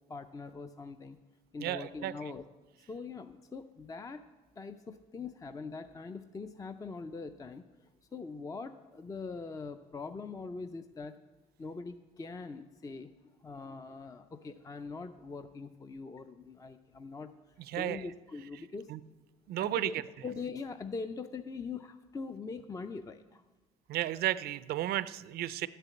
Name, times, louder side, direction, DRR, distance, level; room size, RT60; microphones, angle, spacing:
voice 1, 0.1-1.2 1.5-2.4 2.9-4.2 4.6-7.6 8.1-11.2 11.6-13.1 13.4-17.3 17.7-18.9 19.6-20.0 20.2-23.4, left 4 dB, 20° left, 9 dB, 0.5 m, -42 dB
voice 2, 1.6-2.1 17.6-18.1 18.9-19.0 19.5-20.0 23.9-25.7, right 13 dB, 70° right, 16 dB, 0.5 m, -33 dB
11.5 x 6.8 x 8.4 m, 1.3 s
cardioid pair, 110°, 17 cm